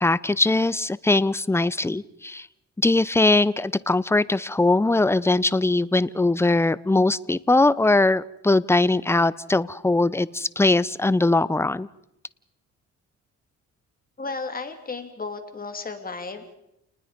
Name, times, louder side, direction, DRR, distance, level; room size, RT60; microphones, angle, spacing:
voice 1, 0.0-2.5 2.8-11.9, left 2 dB, 10° left, 18 dB, 0.7 m, -21 dB
voice 2, 14.2-16.6, left 4 dB, 30° left, 6 dB, 3.3 m, -34 dB
29.0 x 20.0 x 5.2 m, 0.82 s
cardioid pair, 90°, 30 cm